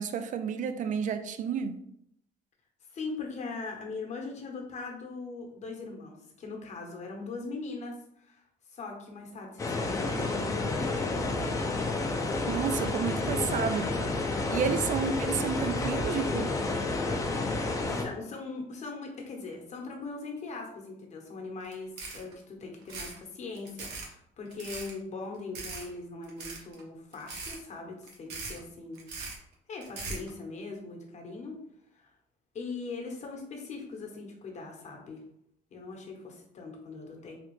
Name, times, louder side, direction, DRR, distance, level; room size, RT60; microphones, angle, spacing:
voice 1, 0.0-1.8 12.5-14.0 14.5-16.5, right 7 dB, 50° right, 10 dB, 0.4 m, -31 dB
voice 2, 2.9-8.4 8.7-11.2 14.3-14.6 17.5-29.1 29.7-31.5 31.9-32.1 32.5-35.2 35.7-37.4, left 3 dB, 45° left, 1 dB, 0.9 m, -40 dB
sound 1, 9.6-18.0, left 3 dB, 20° left, 0.5 m, -30 dB
sound 2, 21.6-21.7 22.0-22.3 22.8-23.2 23.5-24.1 24.5-24.9 25.5-25.9 26.2-26.8 27.1-27.6 28.0-28.6 29.0-29.4 29.8-30.3, right 3 dB, 80° right, 0.9 m, -39 dB
3.3 x 2.4 x 3.1 m, 0.74 s
cardioid pair, 110°, 17 cm